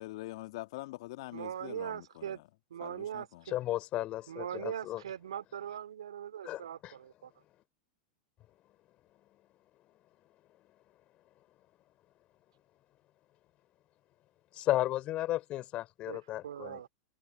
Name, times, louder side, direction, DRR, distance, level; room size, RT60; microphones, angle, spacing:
voice 1, 0.0-2.4 2.8-3.4, left 19 dB, 60° left, 1.9 m, -44 dB
voice 2, 1.3-2.4 2.7-3.3 4.3-7.3 16.1-16.9, right 9 dB, 75° right, 2.7 m, -40 dB
voice 3, 3.5-5.0 6.4-6.9 14.5-16.9, left 15 dB, 40° left, 4.2 m, -34 dB
hypercardioid pair, 95°, 3 cm